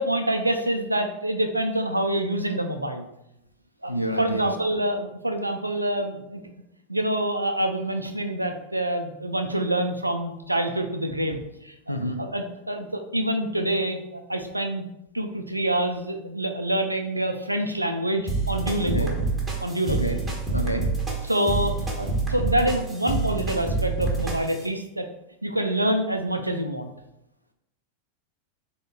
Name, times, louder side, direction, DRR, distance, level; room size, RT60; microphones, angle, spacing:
voice 1, 0.0-3.1 3.8-3.9 4.2-6.4 6.9-14.8 15.1-19.1 19.6-20.2 21.2-25.1 25.4-26.9, right 1 dB, 85° right, 5 dB, 0.4 m, -26 dB
voice 2, 3.9-4.5 11.9-12.2 18.8-19.1 19.9-20.2 20.5-20.9, equal, 90° left, 4 dB, 0.4 m, -28 dB
sound 1, 18.3-24.6, right 3 dB, 5° right, 1.1 m, -27 dB
3.7 x 3.5 x 2.3 m, 0.84 s
figure-of-eight pair, 90°, 0 cm